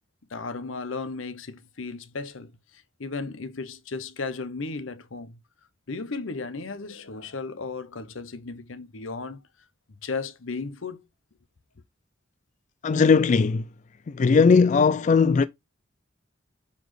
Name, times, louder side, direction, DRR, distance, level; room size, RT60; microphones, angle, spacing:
voice 1, 0.3-5.4 5.9-9.5 10.0-11.0, left 4 dB, 85° left, 0.8 m, -35 dB
voice 2, 12.8-13.7 14.1-15.5, left 5 dB, 40° left, 0.3 m, -18 dB
9.3 x 4.2 x 3.2 m
head